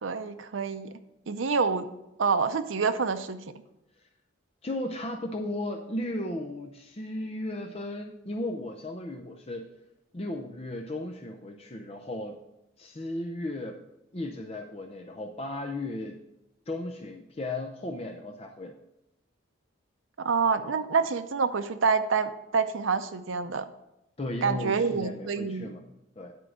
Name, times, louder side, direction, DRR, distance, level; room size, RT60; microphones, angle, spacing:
voice 1, 0.0-0.9 1.3-1.9 2.2-3.4 20.2-23.7 24.4-25.8, right 5 dB, 75° right, 10 dB, 0.6 m, -27 dB
voice 2, 4.6-9.7 10.1-12.4 12.8-13.8 14.1-16.2 16.7-18.8 24.2-25.8 26.2-26.3, left 1 dB, 30° left, 4 dB, 0.5 m, -35 dB
10.0 x 4.6 x 6.2 m, 0.89 s
head